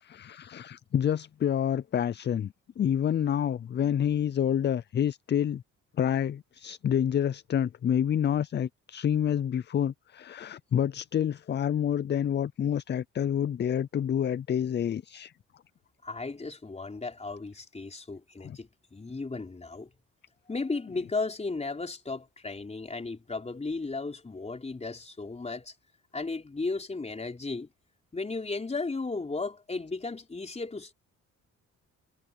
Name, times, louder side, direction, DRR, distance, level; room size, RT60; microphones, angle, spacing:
voice 1, 0.0-5.6 6.0-15.3 18.4-18.6 20.9-21.1, left 9 dB, 35° left, 0.5 m, -28 dB
voice 2, 16.0-19.9 20.5-25.7 26.1-27.7 28.1-30.9, left 3 dB, 20° left, 4.2 m, -35 dB
cardioid pair, 90°, 30 cm